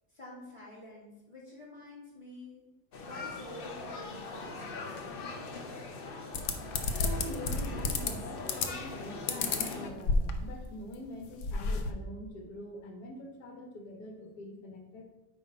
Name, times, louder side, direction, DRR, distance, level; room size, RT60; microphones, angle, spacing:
voice 1, 0.1-2.6 3.0-5.3, left 1 dB, 15° left, -5 dB, 2.6 m, -48 dB
sound 1, 2.9-9.9, left 3 dB, 45° left, 0.7 m, -41 dB
sound 2, 6.3-8.1 8.5-8.9 9.3-10.6 10.9-11.0 11.2-11.9, left 4 dB, 85° left, 1.4 m, -31 dB
voice 2, 7.0-15.0, left 1 dB, 70° left, 2 dB, 1.7 m, -44 dB
9.0 x 3.4 x 5.4 m, 1.1 s
omnidirectional pair, 1.7 m